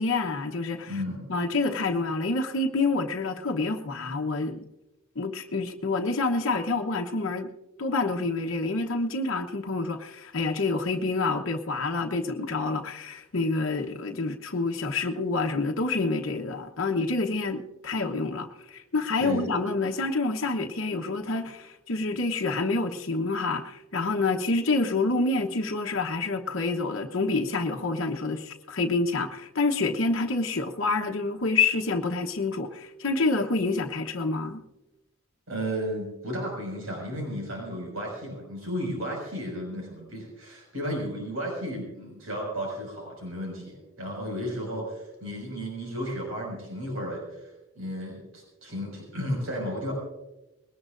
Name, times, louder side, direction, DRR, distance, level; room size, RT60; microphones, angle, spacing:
voice 1, 0.0-1.0 1.3-4.6 5.2-7.5 7.8-34.6, left 3 dB, 65° left, 1.0 m, -27 dB
voice 2, 0.9-1.3 19.2-19.5 35.5-47.5 47.8-49.9, equal, 80° right, 5.7 m, -33 dB
21.0 x 19.0 x 2.6 m
head